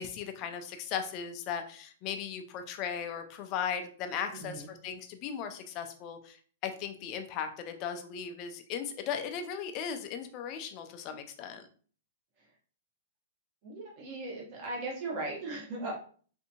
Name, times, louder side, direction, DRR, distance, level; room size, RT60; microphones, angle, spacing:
voice 1, 0.0-6.4 6.6-11.7, left 7 dB, 25° left, 6 dB, 0.3 m, -37 dB
voice 2, 13.6-15.9, right 2 dB, 30° right, -3 dB, 0.8 m, -38 dB
3.4 x 2.7 x 2.7 m, 0.44 s
hypercardioid pair, 175°, 0 cm